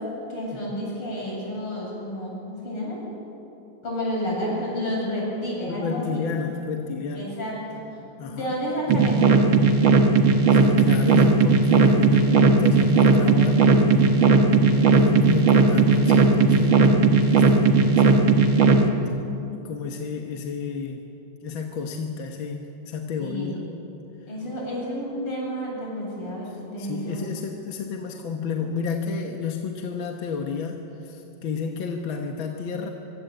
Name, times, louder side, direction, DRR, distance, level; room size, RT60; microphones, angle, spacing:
voice 1, 0.3-3.0 3.8-6.2 7.1-8.0 8.3-9.4 23.2-23.7 24.3-27.2, equal, 90° left, -4 dB, 9.1 m, -30 dB
voice 2, 5.7-7.3 8.2-8.5 10.5-18.3 19.5-21.0 21.4-23.6 26.8-32.9, left 5 dB, 65° left, 3 dB, 2.0 m, -31 dB
sound 1, 8.9-18.8, right 4 dB, 65° right, 2.2 m, -17 dB
24.5 x 23.5 x 8.0 m, 2.9 s
omnidirectional pair, 2.4 m